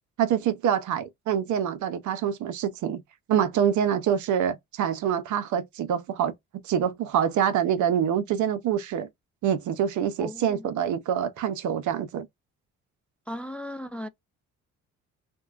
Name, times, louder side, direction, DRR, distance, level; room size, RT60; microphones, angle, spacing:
voice 1, 0.2-3.0 3.3-6.3 6.6-9.1 9.4-12.3, right 9 dB, 75° right, 0.7 m, -25 dB
voice 2, 10.2-10.7 13.3-14.1, left 1 dB, 5° left, 0.4 m, -36 dB
3.5 x 2.2 x 2.4 m
cardioid pair, 90°, 30 cm